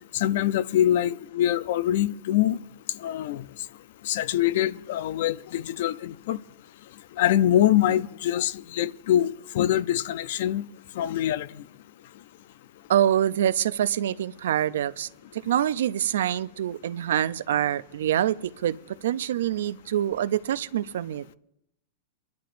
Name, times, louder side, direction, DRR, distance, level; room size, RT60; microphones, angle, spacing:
voice 1, 0.1-2.6 3.0-3.4 4.0-6.4 7.2-10.6 11.0-11.5, left 12 dB, 65° left, 0.5 m, -24 dB
voice 2, 12.9-18.8 19.0-21.3, right 11 dB, 85° right, 0.4 m, -25 dB
29.0 x 11.5 x 2.6 m
supercardioid pair, 150°, 0 cm